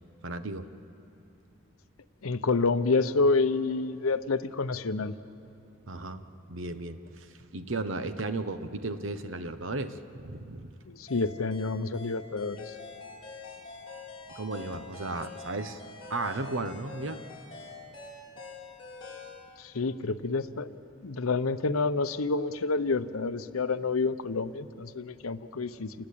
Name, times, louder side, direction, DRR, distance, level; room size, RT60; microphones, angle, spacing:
voice 1, 0.2-0.7 5.9-10.0 10.2-10.7 14.3-15.8 16.1-17.2, right 2 dB, 65° right, 10 dB, 1.1 m, -35 dB
voice 2, 2.2-5.1 10.9-12.7 19.6-20.8 21.0-25.9, left 3 dB, 85° left, 12 dB, 0.8 m, -28 dB
sound 1, 11.1-19.4, left 4 dB, 25° left, 6.2 m, -45 dB
28.5 x 19.5 x 8.6 m, 2.8 s
head